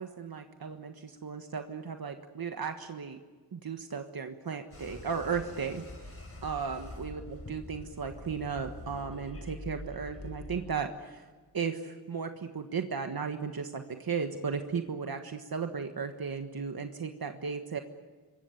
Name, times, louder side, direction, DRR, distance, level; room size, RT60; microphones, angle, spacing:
voice 1, 0.0-3.2 3.5-6.1 6.4-7.2 7.5-11.3 11.5-17.8, right 6 dB, 65° right, 6 dB, 1.5 m, -35 dB
sound 1, 4.7-10.6, left 2 dB, 35° left, 5.6 m, -45 dB
27.0 x 23.0 x 7.1 m, 1.4 s
wide cardioid pair, 110°, 38 cm